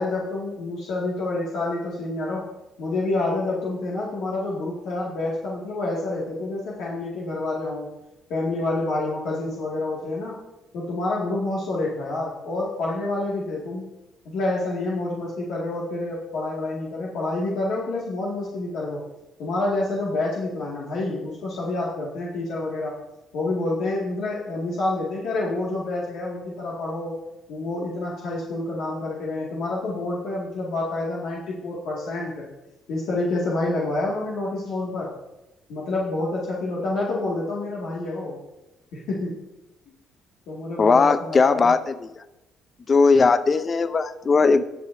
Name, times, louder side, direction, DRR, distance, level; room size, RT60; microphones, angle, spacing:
voice 1, 0.0-2.4 2.8-7.9 8.3-10.4 10.7-13.9 14.3-19.0 19.4-23.0 23.3-27.2 27.5-32.5 32.9-35.1 35.7-38.4 38.9-39.4 40.5-41.7, left 2 dB, 75° left, -5 dB, 2.1 m, -28 dB
voice 2, 40.8-42.1 42.9-44.6, left 4 dB, 35° left, 12 dB, 0.6 m, -18 dB
20.0 x 6.9 x 2.7 m, 0.98 s
cardioid pair, 110°, 0 cm